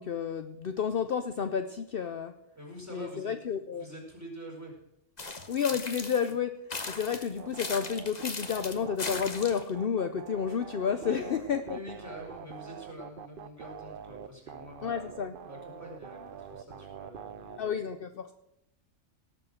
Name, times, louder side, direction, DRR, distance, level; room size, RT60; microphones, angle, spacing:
voice 1, 0.0-2.3 2.9-3.9 5.5-11.8 14.8-15.3 17.6-18.3, left 7 dB, 55° left, 9 dB, 0.8 m, -31 dB
voice 2, 2.5-4.7 10.9-11.3 11.6-15.1 15.4-17.6, equal, 15° right, -2 dB, 4.6 m, -45 dB
sound 1, 5.2-6.3 6.7-9.7, left 3 dB, 35° left, 1.4 m, -38 dB
sound 2, 7.4-17.6, right 9 dB, 55° right, 0.7 m, -45 dB
17.5 x 7.3 x 6.3 m, 0.84 s
omnidirectional pair, 1.2 m